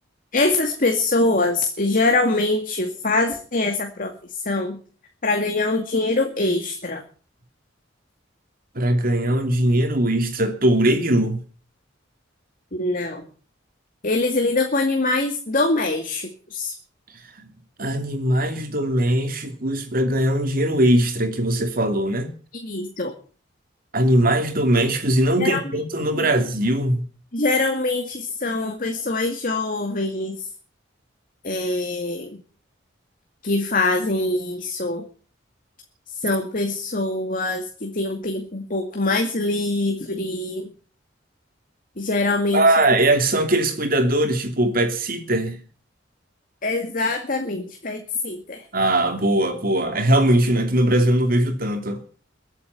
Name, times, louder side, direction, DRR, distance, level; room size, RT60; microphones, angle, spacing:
voice 1, 0.3-4.1 4.4-4.8 5.2-7.0 12.7-13.3 14.0-16.7 22.5-23.1 25.4-25.8 26.1-26.3 27.3-30.5 31.4-32.4 33.4-35.1 36.1-40.7 42.0-42.7 46.6-48.6, left 2 dB, 45° left, 2.2 m, -23 dB
voice 2, 8.7-11.4 17.4-17.5 17.8-22.3 23.9-27.1 42.5-45.6 48.7-52.0, right 1 dB, 50° right, 2.9 m, -20 dB
23.0 x 8.4 x 7.1 m
head